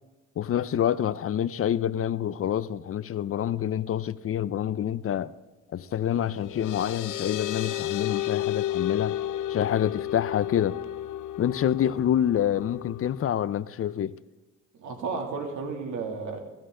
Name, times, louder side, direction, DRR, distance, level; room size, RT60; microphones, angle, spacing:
voice 1, 0.4-5.3 5.7-9.2 9.5-10.8 11.4-14.2, left 10 dB, 50° left, 0.5 m, -27 dB
sound 1, 6.1-13.2, left 13 dB, 85° left, 0.8 m, -32 dB
voice 2, 14.7-16.4, right 4 dB, 75° right, 2.7 m, -33 dB
16.5 x 15.0 x 3.8 m
cardioid pair, 90°, 30 cm